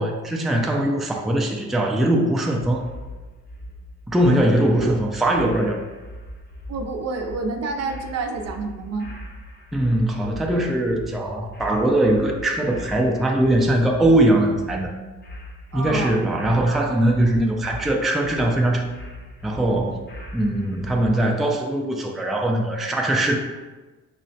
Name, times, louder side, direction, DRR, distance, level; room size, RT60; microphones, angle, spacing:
voice 1, 0.0-2.8 4.1-5.8 9.7-14.9 15.7-18.8 19.4-23.3, right 1 dB, ahead, 1 dB, 0.3 m, -21 dB
sound 1, 2.6-21.2, equal, 35° left, 0.7 m, -40 dB
voice 2, 6.7-9.1 15.7-16.2, right 3 dB, 55° right, 4 dB, 0.5 m, -28 dB
5.4 x 2.0 x 2.7 m, 1.2 s
cardioid pair, 90°, 30 cm